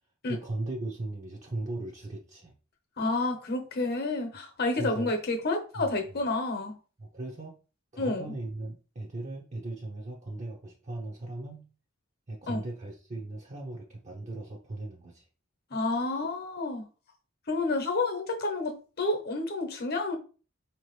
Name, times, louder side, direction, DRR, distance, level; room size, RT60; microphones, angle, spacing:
voice 1, 0.2-2.5 4.8-5.2 5.8-6.0 7.0-7.6 7.9-11.7 12.3-15.2, right 2 dB, 35° right, 0.7 m, -38 dB
voice 2, 3.0-6.8 8.0-8.3 12.5-12.6 15.7-16.9 17.5-20.2, left 2 dB, 50° left, 1.0 m, -30 dB
4.6 x 2.9 x 3.1 m
head